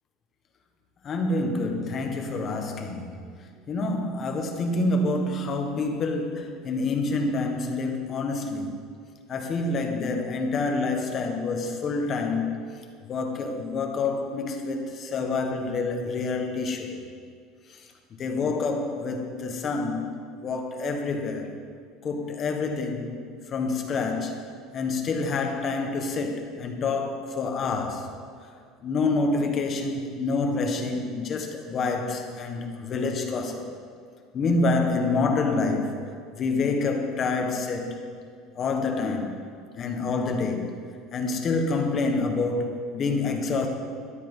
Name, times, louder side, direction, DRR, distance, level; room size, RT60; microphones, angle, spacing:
voice 1, 1.0-3.2 3.7-8.8 9.3-12.6 13.1-17.0 18.2-20.1 20.4-21.5 22.0-23.1 23.5-24.4 24.7-28.1 28.8-33.6 34.3-36.0 36.4-38.0 38.6-39.4 39.7-40.7 41.1-43.7, left 3 dB, 30° left, 4 dB, 1.2 m, -27 dB
13.0 x 10.5 x 5.4 m, 2.1 s
cardioid pair, 170°, 0 cm